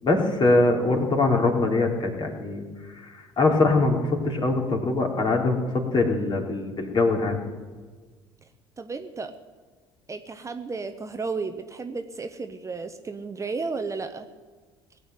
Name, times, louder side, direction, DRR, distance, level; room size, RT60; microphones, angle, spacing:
voice 1, 0.0-7.4, left 2 dB, 35° left, 2 dB, 3.3 m, -23 dB
voice 2, 8.8-9.3 10.1-14.3, right 4 dB, 25° right, 8 dB, 1.0 m, -33 dB
18.5 x 7.9 x 9.3 m, 1.4 s
figure-of-eight pair, 60°, 13 cm